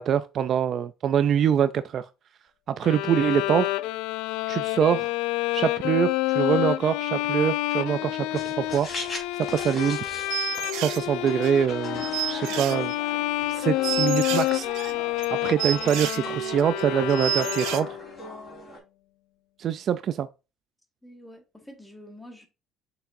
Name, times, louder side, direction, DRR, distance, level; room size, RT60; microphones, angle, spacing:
voice 1, 0.0-2.1 2.7-3.8 4.5-5.1 5.5-8.9 9.5-10.0 10.7-12.9 13.5-14.7 15.3-18.0 19.6-20.3, right 8 dB, 40° right, 0.3 m, -24 dB
Bowed string instrument, 2.8-18.1, left 17 dB, 85° left, 0.4 m, -28 dB
sound 1, 8.3-18.8, equal, 25° left, 3.8 m, -40 dB
sound 2, 10.3-11.0 11.4-11.5 11.9-13.1 13.4-13.5 13.8-16.2 16.6-16.8 17.1-17.8, right 13 dB, 75° right, 0.7 m, -30 dB
voice 2, 21.0-22.5, left 1 dB, 5° left, 1.4 m, -47 dB
6.9 x 5.9 x 2.6 m
cardioid pair, 150°, 0 cm